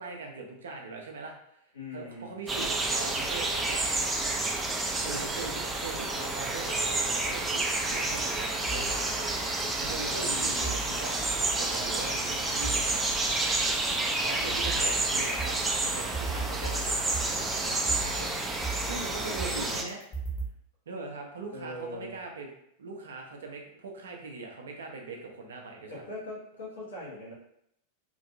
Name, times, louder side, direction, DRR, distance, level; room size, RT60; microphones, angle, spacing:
voice 1, 0.0-1.4 1.9-4.1 5.0-9.4 9.8-13.1 14.2-20.0 20.9-22.5 22.8-26.0, right 3 dB, 65° right, 1 dB, 0.6 m, -41 dB
voice 2, 1.7-2.4 5.0-5.7 10.2-10.8 13.9-14.6 19.2-19.7 21.5-22.2 25.9-27.3, left 2 dB, 70° left, -5 dB, 1.2 m, -42 dB
sound 1, 2.5-19.8, right 2 dB, 10° right, 0.4 m, -29 dB
sound 2, 8.7-9.7 10.6-11.7 12.6-13.7 14.6-20.5, right 2 dB, 30° left, 1.0 m, -37 dB
3.0 x 2.6 x 2.6 m, 0.75 s
figure-of-eight pair, 90°, 0 cm